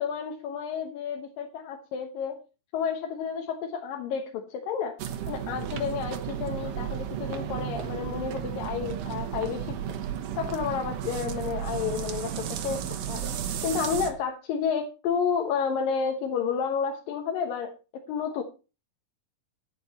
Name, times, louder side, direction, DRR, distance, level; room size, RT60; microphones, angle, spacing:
voice 1, 0.0-2.4 2.7-5.0 5.3-9.8 10.4-13.3 13.6-18.4, left 6 dB, 75° left, 3 dB, 3.0 m, -31 dB
sound 1, 5.0-14.1, right 9 dB, 70° right, 2.7 m, -33 dB
11.0 x 11.0 x 4.1 m, 0.32 s
omnidirectional pair, 4.0 m